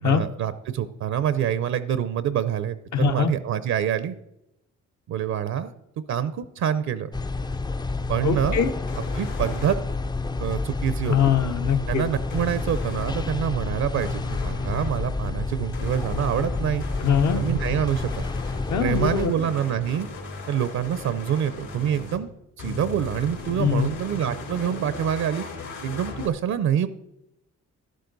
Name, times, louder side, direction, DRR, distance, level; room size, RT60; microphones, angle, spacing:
voice 1, 0.0-4.1 5.1-5.7 6.1-7.1 8.1-8.7 9.2-9.8 10.4-11.3 11.9-16.8 17.3-18.1 18.8-20.1 20.5-22.3 22.6-25.4 25.8-26.9, right 9 dB, 65° right, 13 dB, 0.6 m, -26 dB
voice 2, 2.9-3.3 8.2-8.7 11.0-12.1 17.0-17.4 18.7-19.3 23.6-23.9, left 8 dB, 65° left, 5 dB, 1.0 m, -22 dB
sound 1, 7.1-19.3, left 3 dB, 15° left, 0.4 m, -29 dB
sound 2, 8.9-9.7 12.3-13.2 14.0-14.9 15.7-22.2 22.6-26.3, left 3 dB, 80° left, 3.6 m, -37 dB
11.5 x 11.5 x 4.0 m, 0.86 s
cardioid pair, 90°, 30 cm